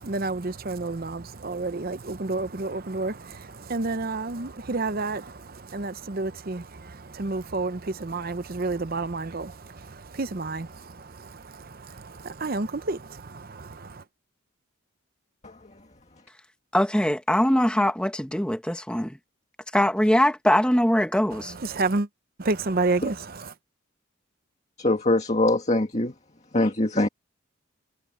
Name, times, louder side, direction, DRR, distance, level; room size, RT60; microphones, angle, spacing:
voice 1, 0.0-14.0 21.3-22.1 22.4-23.5, right 3 dB, 45° right, 0.8 m, -30 dB
voice 2, 15.4-15.9 24.8-26.1 26.5-27.1, left 2 dB, 30° left, 2.0 m, -23 dB
voice 3, 16.7-19.1 19.7-21.5, left 1 dB, 5° left, 1.1 m, -22 dB
head